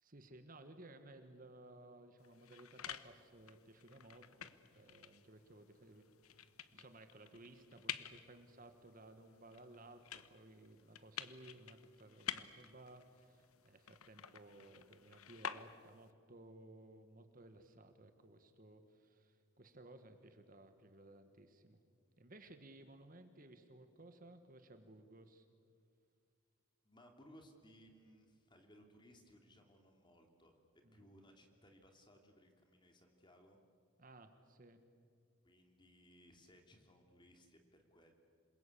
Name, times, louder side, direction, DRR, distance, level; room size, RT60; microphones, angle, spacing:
voice 1, 0.0-6.0 6.7-21.8 22.2-25.4 30.8-31.1 34.0-34.8, right 2 dB, 40° right, 8 dB, 1.5 m, -58 dB
sound 1, 2.2-16.1, left 9 dB, 90° left, 1.0 m, -51 dB
voice 2, 26.8-30.6 30.9-33.6 35.4-38.1, equal, 20° left, 4 dB, 2.8 m, -64 dB
27.5 x 21.5 x 8.5 m, 2.2 s
head